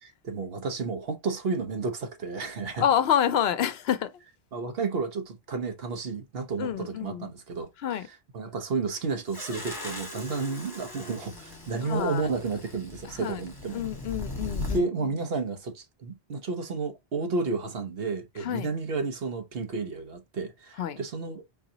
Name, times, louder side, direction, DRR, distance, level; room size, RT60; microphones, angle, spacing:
voice 1, 0.0-2.8 4.5-13.8 14.6-21.5, right 4 dB, 65° right, 1.2 m, -32 dB
voice 2, 2.8-4.1 6.6-7.3 7.8-8.1 11.9-12.3 13.2-13.4 13.7-14.9 18.4-18.7 20.8-21.0, left 9 dB, 70° left, 0.8 m, -27 dB
sound 1, 9.3-14.8, left 2 dB, 20° left, 1.6 m, -38 dB
4.6 x 4.0 x 2.7 m
omnidirectional pair, 1.1 m